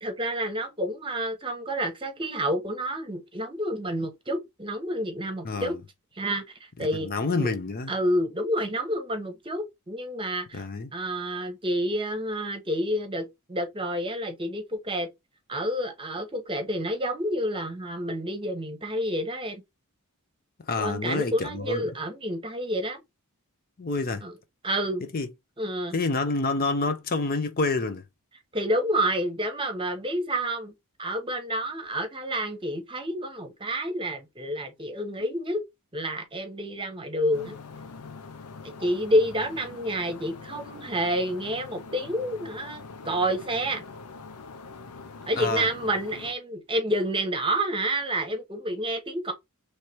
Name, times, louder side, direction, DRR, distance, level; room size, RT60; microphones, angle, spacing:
voice 1, 0.0-5.7 6.2-7.1 7.3-7.5 7.9-10.6 10.9-15.1 15.5-19.6 20.8-23.0 24.2-24.3 24.6-25.0 25.6-25.9 28.5-30.7 31.0-35.6 35.9-37.6 38.6-43.8 45.3-49.3, equal, 25° right, 1.0 m, -29 dB
voice 2, 6.8-7.9 10.5-10.9 20.7-21.8 23.8-24.2 25.1-25.3 25.9-28.0 45.4-45.7, left 3 dB, 40° left, 0.6 m, -28 dB
sound 1, 37.3-46.3, left 4 dB, 85° left, 0.6 m, -43 dB
3.2 x 3.2 x 4.2 m
head